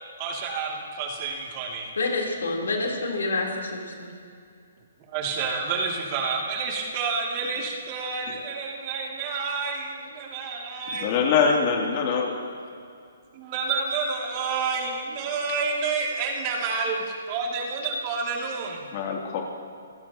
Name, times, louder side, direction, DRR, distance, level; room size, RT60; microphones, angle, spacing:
voice 1, 0.2-1.9 5.1-11.2 13.3-18.9, right 4 dB, 35° right, -1 dB, 2.6 m, -29 dB
voice 2, 2.0-4.1, left 3 dB, 80° left, -1 dB, 3.7 m, -28 dB
voice 3, 11.0-12.3 18.9-19.4, left 6 dB, 40° left, 0 dB, 2.9 m, -23 dB
28.5 x 15.5 x 3.0 m, 2.4 s
hypercardioid pair, 145°, 0 cm